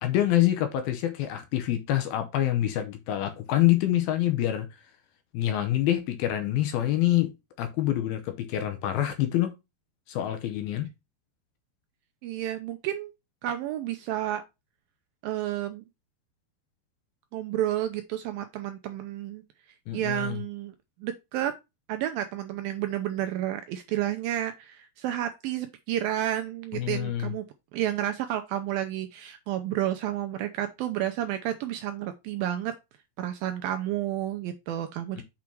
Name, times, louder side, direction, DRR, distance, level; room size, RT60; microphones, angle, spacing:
voice 1, 0.0-4.7 5.3-7.3 7.6-9.5 10.1-10.9 19.9-20.4 26.7-27.3 35.2-35.3, left 13 dB, 75° left, 2.6 m, -26 dB
voice 2, 12.2-13.1 13.4-14.4 15.2-15.8 17.3-19.4 19.9-20.7 21.0-21.5 21.9-27.4 27.7-32.7 33.2-35.2, right 12 dB, 80° right, 2.1 m, -31 dB
7.0 x 4.9 x 4.5 m
omnidirectional pair, 4.7 m